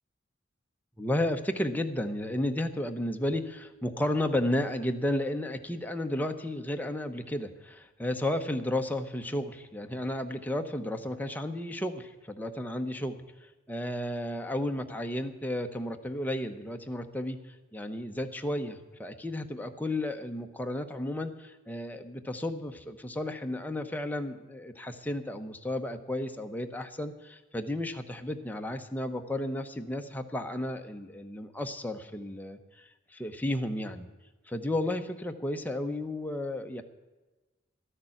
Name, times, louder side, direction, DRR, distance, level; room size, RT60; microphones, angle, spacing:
voice 1, 1.0-13.2 13.7-17.4 17.7-34.1 34.5-36.8, left 1 dB, 10° left, 5 dB, 0.8 m, -33 dB
12.5 x 6.7 x 9.8 m, 1.2 s
head